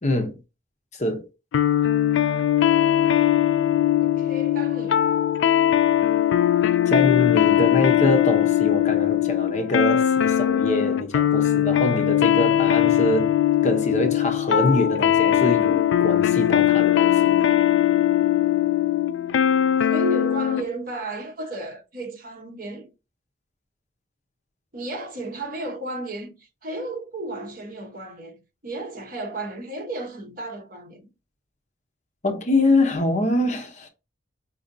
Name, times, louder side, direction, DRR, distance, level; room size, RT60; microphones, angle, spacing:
voice 1, 0.0-0.3 1.0-1.3 6.9-13.3 13.6-17.4 32.2-33.9, left 1 dB, 35° left, 0.7 m, -24 dB
sound 1, 1.5-20.7, left 11 dB, 70° left, 0.3 m, -20 dB
voice 2, 4.0-5.0 19.8-22.9 24.7-31.1, right 1 dB, 45° right, 0.9 m, -33 dB
5.2 x 2.6 x 2.6 m
head